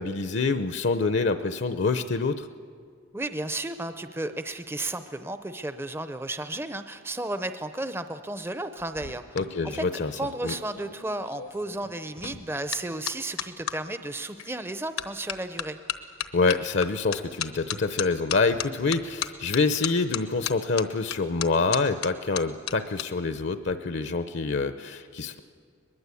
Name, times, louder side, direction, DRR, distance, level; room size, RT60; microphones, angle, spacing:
voice 1, 0.0-2.5 9.4-10.1 10.4-10.5 16.3-25.4, left 4 dB, 55° left, 11 dB, 0.7 m, -26 dB
voice 2, 3.1-9.2 9.6-9.8 10.1-15.8, right 2 dB, 10° right, 10 dB, 0.6 m, -33 dB
sound 1, 8.8-13.8 14.4-14.7 15.0-23.1 23.3-23.7, left 9 dB, 80° left, 1.0 m, -35 dB
22.0 x 21.0 x 8.4 m, 2.2 s
head